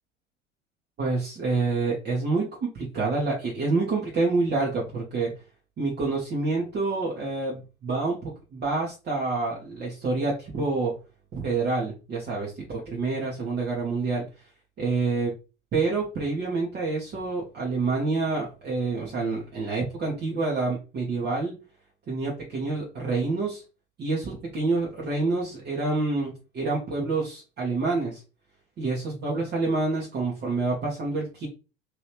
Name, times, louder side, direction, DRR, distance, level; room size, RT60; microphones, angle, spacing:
voice 1, 1.0-5.3 5.8-10.9 11.3-14.2 14.8-15.3 15.7-21.6 22.1-23.6 24.0-28.2 28.8-31.5, right 3 dB, 30° right, -4 dB, 1.2 m, -27 dB
3.0 x 3.0 x 3.3 m, 0.31 s
figure-of-eight pair, 75°, 35 cm